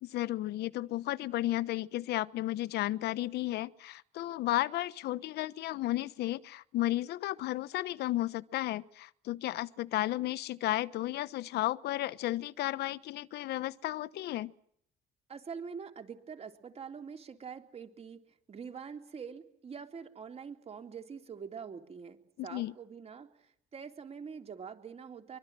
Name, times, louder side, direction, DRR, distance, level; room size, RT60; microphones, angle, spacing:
voice 1, 0.0-14.5 22.4-22.7, left 15 dB, 75° left, 1.1 m, -33 dB
voice 2, 15.3-18.2 18.5-22.2 22.4-25.4, right 6 dB, 35° right, 3.5 m, -45 dB
24.0 x 24.0 x 7.7 m
cardioid pair, 110°, 17 cm